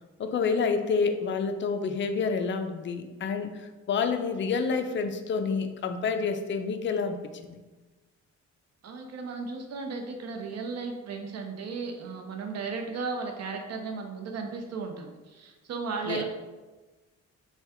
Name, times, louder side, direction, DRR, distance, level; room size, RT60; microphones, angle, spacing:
voice 1, 0.2-3.6 3.9-7.2 7.5-7.6 16.0-16.2, left 5 dB, 40° left, 7 dB, 0.4 m, -28 dB
voice 2, 8.8-16.2, right 4 dB, 55° right, 4 dB, 0.7 m, -35 dB
3.4 x 2.3 x 4.2 m, 1.2 s
cardioid pair, 90°, 30 cm